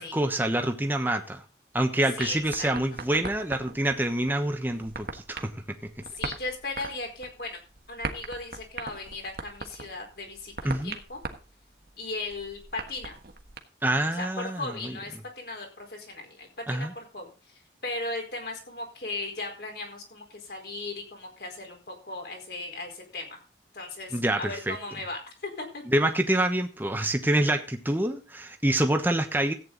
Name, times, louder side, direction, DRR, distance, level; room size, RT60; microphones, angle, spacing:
voice 1, 0.0-1.4 1.7-5.9 10.6-11.0 13.8-14.9 16.7-16.9 24.1-24.8 25.9-29.5, right 1 dB, 10° right, 5 dB, 1.1 m, -26 dB
voice 2, 2.2-2.7 6.1-7.6 7.9-11.2 12.0-13.2 13.9-23.4 23.7-25.8, left 2 dB, 60° left, 2 dB, 4.5 m, -37 dB
sound 1, 2.2-13.6, right 3 dB, 55° right, 1.4 m, -40 dB
14.5 x 9.1 x 4.0 m, 0.33 s
head